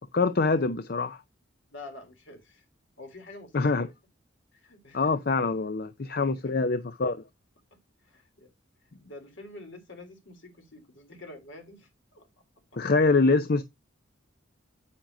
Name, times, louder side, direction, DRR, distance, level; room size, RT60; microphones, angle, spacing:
voice 1, 0.1-1.2 3.5-3.9 4.9-7.2 12.8-13.6, left 3 dB, 50° left, 0.5 m, -24 dB
voice 2, 1.7-2.6 3.0-3.8 4.5-5.1 6.2-6.3 8.0-8.5 9.0-12.3, left 2 dB, 70° left, 3.3 m, -47 dB
9.6 x 8.9 x 2.7 m
head